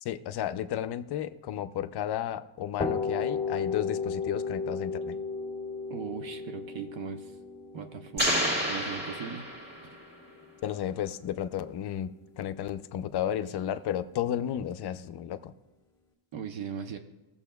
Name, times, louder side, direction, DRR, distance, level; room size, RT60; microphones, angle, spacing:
voice 1, 0.0-5.2 10.6-12.1 12.4-15.5, left 10 dB, 55° left, 11 dB, 0.5 m, -33 dB
sound 1, 2.8-10.5, left 5 dB, 10° left, 1.6 m, -34 dB
voice 2, 5.9-7.3 7.7-8.4 8.6-9.5 16.3-17.0, right 7 dB, 65° right, 6 dB, 0.9 m, -38 dB
sound 2, 8.2-10.1, equal, 20° right, 1.7 m, -29 dB
17.0 x 7.1 x 2.3 m, 1.1 s
cardioid pair, 155°, 49 cm